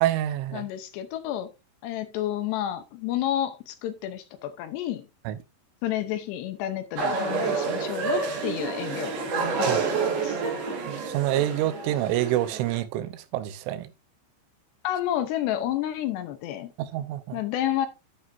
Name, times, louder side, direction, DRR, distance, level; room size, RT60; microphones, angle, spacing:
voice 1, 0.0-0.6 5.3-5.4 9.7-9.8 10.9-13.9 16.8-17.4, right 13 dB, 90° right, 3.3 m, -27 dB
voice 2, 0.5-1.5 1.8-5.1 5.8-9.3 9.6-10.4 14.8-16.7 17.3-17.9, left 12 dB, 75° left, 2.7 m, -30 dB
sound 1, 7.0-12.8, right 4 dB, 60° right, 4.3 m, -29 dB
10.0 x 9.4 x 2.6 m
omnidirectional pair, 5.4 m